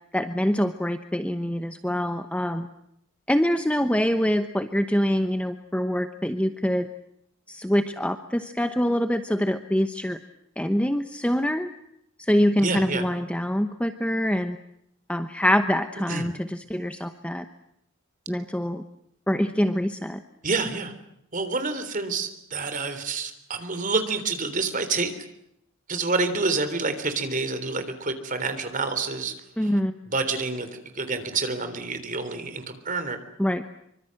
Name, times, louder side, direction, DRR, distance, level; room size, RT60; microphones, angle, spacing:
voice 1, 0.1-2.7 3.3-6.9 7.5-10.2 10.6-11.7 12.2-14.6 15.1-17.5 18.3-18.8 19.3-20.2 29.6-30.0 33.4-33.6, equal, 5° left, 8 dB, 0.9 m, -25 dB
voice 2, 12.6-13.1 16.1-16.3 20.4-20.9 21.3-25.1 25.9-29.3 30.1-30.7 31.0-33.2, right 3 dB, 40° right, 10 dB, 3.5 m, -28 dB
26.0 x 24.5 x 7.7 m, 0.79 s
head